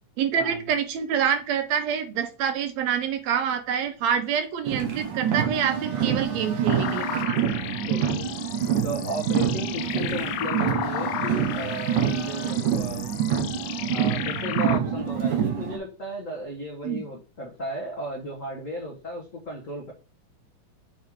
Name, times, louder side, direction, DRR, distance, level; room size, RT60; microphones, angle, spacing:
voice 1, 0.2-7.7 16.8-17.0, right 8 dB, 75° right, 8 dB, 1.8 m, -27 dB
Car, 4.6-15.8, right 8 dB, 90° right, 2.6 m, -26 dB
sound 1, 6.7-14.8, left 11 dB, 85° left, 2.0 m, -34 dB
voice 2, 7.8-8.3 8.8-13.0 13.9-19.9, equal, 60° left, -2 dB, 0.8 m, -34 dB
7.2 x 3.7 x 4.6 m, 0.35 s
omnidirectional pair, 3.4 m